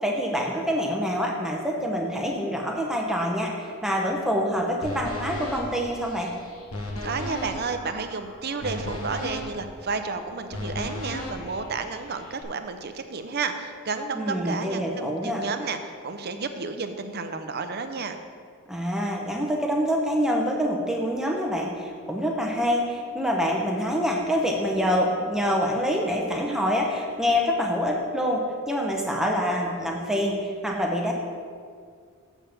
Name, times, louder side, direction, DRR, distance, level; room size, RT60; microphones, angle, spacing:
voice 1, 0.0-6.3 14.1-15.4 18.7-31.1, equal, ahead, 0 dB, 0.8 m, -26 dB
sound 1, 4.8-12.4, left 1 dB, 75° left, 1.3 m, -36 dB
voice 2, 7.0-18.2, right 4 dB, 45° right, 7 dB, 0.6 m, -31 dB
7.1 x 5.5 x 6.9 m, 2.1 s
head